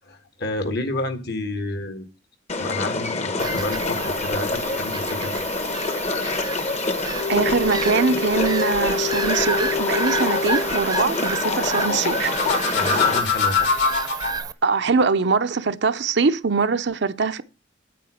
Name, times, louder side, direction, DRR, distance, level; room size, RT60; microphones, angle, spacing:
voice 1, 0.1-2.1 2.6-5.7 12.7-13.7, left 2 dB, 60° left, 1.5 m, -30 dB
sound 1, 2.5-13.2, left 3 dB, 35° left, 1.1 m, -26 dB
Bird vocalization bird call bird song / Gull seagull, 3.4-14.5, right 4 dB, 20° right, 0.7 m, -31 dB
sound 2, 7.0-10.7 12.1-14.4, left 5 dB, 75° left, 4.0 m, -25 dB
voice 2, 7.3-12.3 14.6-17.4, right 4 dB, 65° right, 0.7 m, -22 dB
9.3 x 8.6 x 6.3 m
head